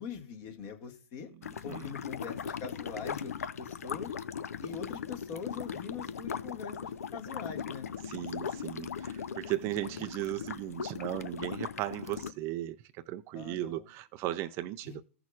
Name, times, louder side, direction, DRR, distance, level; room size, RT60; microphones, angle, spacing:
voice 1, 0.0-1.3 1.6-4.1 4.6-7.9 13.3-13.8 14.8-15.0, left 6 dB, 40° left, 1.8 m, -43 dB
voice 2, 1.2-1.9 8.0-15.0, right 14 dB, 35° right, 0.4 m, -37 dB
sound 1, 1.4-12.3, left 7 dB, 80° left, 0.6 m, -39 dB
15.5 x 6.2 x 2.4 m
hypercardioid pair, 125°, 8 cm